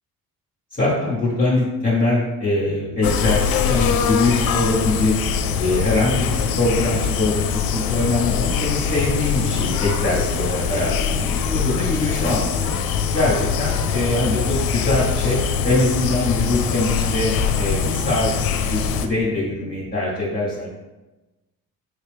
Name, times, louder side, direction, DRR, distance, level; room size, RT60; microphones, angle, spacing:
voice 1, 0.7-5.2 5.5-12.7 13.1-15.4 15.6-18.3 18.6-20.7, left 2 dB, 20° left, -6 dB, 1.0 m, -23 dB
sound 1, 2.6-19.9, right 2 dB, 60° right, 0.6 m, -40 dB
sound 2, 3.0-19.1, left 7 dB, 60° left, 0.5 m, -23 dB
3.4 x 2.9 x 3.4 m, 1.1 s
hypercardioid pair, 50°, 41 cm